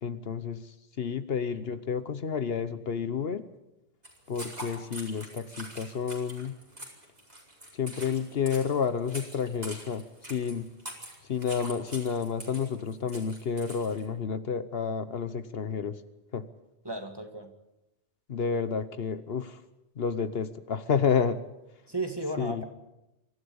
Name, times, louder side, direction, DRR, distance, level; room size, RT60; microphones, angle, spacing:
voice 1, 0.0-3.5 4.3-6.6 7.7-10.7 11.3-16.0 16.3-16.5 18.3-19.6 20.0-21.4 22.4-22.6, left 6 dB, 65° left, 12 dB, 1.1 m, -30 dB
sound 1, 4.0-14.0, right 1 dB, 40° right, 5.0 m, -44 dB
voice 2, 16.8-17.5 21.9-22.6, right 2 dB, 20° right, 5 dB, 2.1 m, -34 dB
25.0 x 14.0 x 8.8 m, 0.94 s
omnidirectional pair, 1.1 m